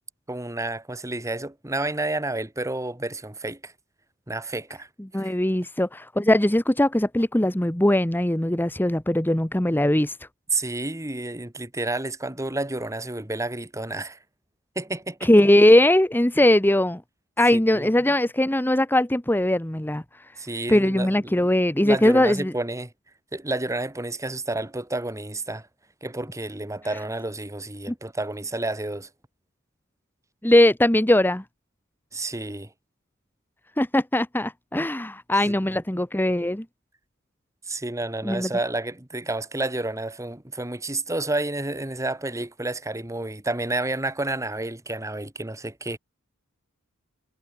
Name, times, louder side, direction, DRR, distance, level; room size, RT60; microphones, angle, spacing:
voice 1, 0.3-3.7 4.3-4.9 5.2-5.3 10.5-14.2 14.8-15.3 17.5-18.1 20.4-21.5 21.8-22.9 23.3-25.7 26.0-29.1 32.1-32.7 35.7-36.0 37.7-46.0, right 2 dB, 15° right, 1.9 m, -30 dB
voice 2, 5.1-10.2 15.2-17.0 17.4-20.0 20.7-22.5 27.9-28.0 30.4-31.4 33.8-36.6 38.2-38.5, left 1 dB, 10° left, 1.0 m, -20 dB
head